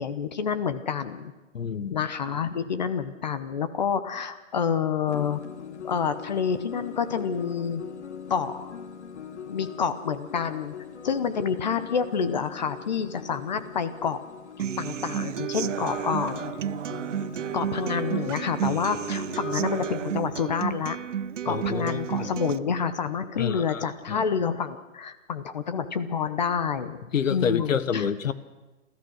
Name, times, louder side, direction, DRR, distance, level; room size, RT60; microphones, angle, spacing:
voice 1, 0.0-1.3 1.9-5.4 5.8-7.8 8.3-8.7 9.5-10.7 11.0-14.2 14.8-16.6 17.5-21.0 21.4-27.0 27.3-28.1, left 6 dB, 35° left, 12 dB, 0.9 m, -28 dB
voice 2, 1.5-2.0 21.5-22.3 23.4-24.2 27.1-28.3, left 7 dB, 80° left, 14 dB, 1.3 m, -28 dB
sound 1, 5.1-19.9, left 7 dB, 60° left, 1.6 m, -41 dB
Human voice / Acoustic guitar, 14.6-22.6, right 9 dB, 70° right, 0.7 m, -31 dB
29.5 x 13.5 x 6.4 m, 1.1 s
hypercardioid pair, 170°, 39 cm